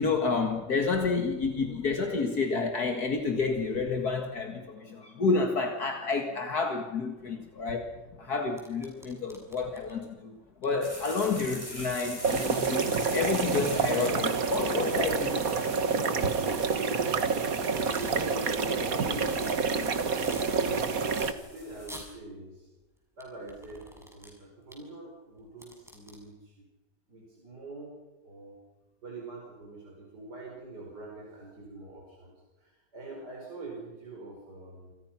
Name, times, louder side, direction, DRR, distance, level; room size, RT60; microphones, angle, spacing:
voice 1, 0.0-7.9 8.2-12.8 13.1-15.4, left 4 dB, 65° left, 2.4 m, -29 dB
sound 1, 8.6-9.9 10.6-10.7 10.9-12.0 12.6-12.7 13.4-15.3 16.2-17.1 17.6-18.4 18.8-18.9 19.1-19.5 19.9-20.5 21.0-21.3 21.8-22.1 23.2-24.3 24.7-24.8 25.4-26.2, equal, ahead, 6.8 m, -48 dB
sound 2, 10.8-22.1, equal, 20° left, 7.3 m, -45 dB
sound 3, 12.2-21.3, right 5 dB, 55° right, 1.9 m, -28 dB
voice 2, 17.9-22.7 23.2-26.6 27.1-27.9 28.2-28.6 29.0-34.9, right 2 dB, 70° right, 5.5 m, -45 dB
29.0 x 26.5 x 6.0 m
omnidirectional pair, 1.8 m